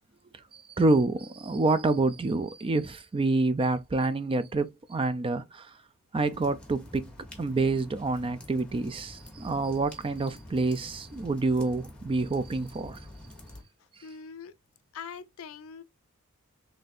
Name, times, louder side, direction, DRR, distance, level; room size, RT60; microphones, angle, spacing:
voice 1, 0.3-5.8 6.1-7.1 7.4-13.1, right 3 dB, 25° right, 0.3 m, -27 dB
sound 1, 6.1-13.6, left 1 dB, 5° left, 1.0 m, -47 dB
voice 2, 14.0-14.5 14.9-15.8, left 6 dB, 65° left, 0.5 m, -42 dB
3.9 x 3.3 x 2.6 m
head